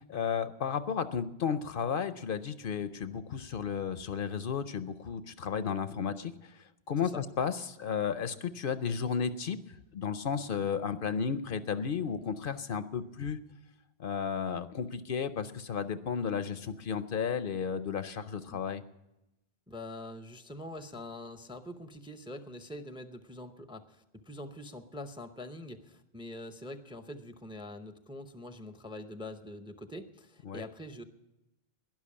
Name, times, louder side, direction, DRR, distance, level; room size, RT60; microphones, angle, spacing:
voice 1, 0.0-6.3 6.9-9.6 9.9-13.4 14.0-18.8 30.5-30.6, left 6 dB, 60° left, 12 dB, 0.8 m, -33 dB
voice 2, 19.7-31.0, left 1 dB, 5° right, 9 dB, 0.6 m, -44 dB
12.0 x 10.5 x 8.5 m, 0.94 s
omnidirectional pair, 1.1 m